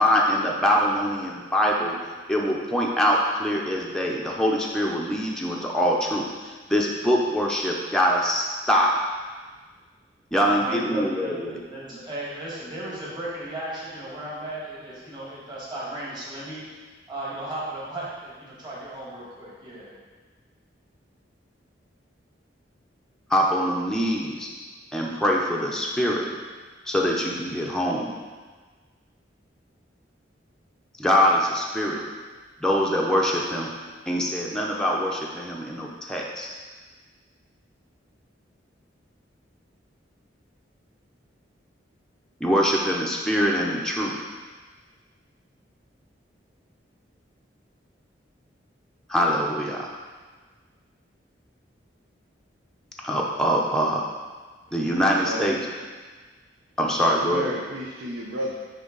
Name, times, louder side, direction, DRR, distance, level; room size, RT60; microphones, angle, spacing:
voice 1, 0.0-2.0 2.3-6.3 6.7-9.0 10.3-11.5 23.3-24.5 24.9-26.3 26.9-28.1 31.0-32.0 32.6-33.7 34.1-36.5 42.4-44.3 49.1-49.9 53.0-54.0 54.7-55.6 56.8-57.5, equal, 5° left, -3 dB, 0.6 m, -23 dB
voice 2, 10.4-16.6 17.1-19.9, right 1 dB, 25° right, -7 dB, 1.5 m, -35 dB
voice 3, 55.1-55.5 57.0-58.5, right 1 dB, 75° right, -3 dB, 0.7 m, -32 dB
9.2 x 3.4 x 3.8 m, 1.4 s
head